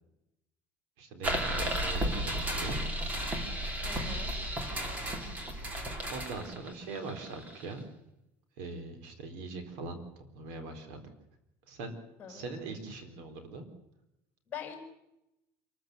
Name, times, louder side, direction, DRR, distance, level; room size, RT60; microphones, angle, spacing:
voice 1, 1.0-2.8 6.1-7.8 8.6-11.1 11.7-12.0 12.3-13.7, right 3 dB, 80° right, 8 dB, 4.1 m, -41 dB
sound 1, 1.2-7.8, right 1 dB, 20° right, 2.9 m, -33 dB
voice 2, 3.8-4.3 12.2-12.8 14.5-14.8, left 8 dB, 25° left, 3 dB, 5.7 m, -44 dB
27.5 x 14.0 x 8.0 m, 0.88 s
cardioid pair, 160°, 7 cm